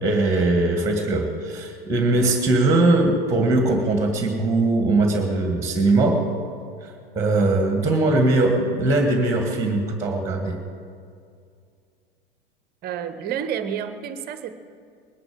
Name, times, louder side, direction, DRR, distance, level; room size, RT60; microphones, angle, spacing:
voice 1, 0.0-6.2 7.2-10.6, right 2 dB, 10° right, 3 dB, 1.9 m, -20 dB
voice 2, 12.8-14.5, right 8 dB, 30° right, 11 dB, 0.9 m, -29 dB
20.0 x 11.0 x 5.1 m, 2.3 s
figure-of-eight pair, 90°, 29 cm